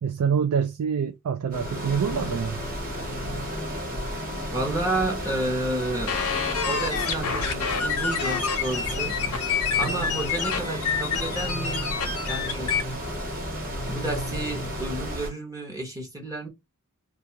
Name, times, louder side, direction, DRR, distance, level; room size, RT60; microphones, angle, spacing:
voice 1, 0.0-2.6 9.8-10.1, right 7 dB, 80° right, 0.4 m, -26 dB
sound 1, 1.5-15.2, left 2 dB, 40° left, 0.7 m, -36 dB
sound 2, 1.5-15.3, right 1 dB, 40° right, 1.0 m, -35 dB
voice 2, 4.5-6.1 6.7-9.2 9.8-11.9 12.3-12.7 13.8-16.5, right 2 dB, 15° right, 0.9 m, -31 dB
sound 3, 6.1-12.8, left 6 dB, 75° left, 0.7 m, -28 dB
2.5 x 2.3 x 2.8 m
head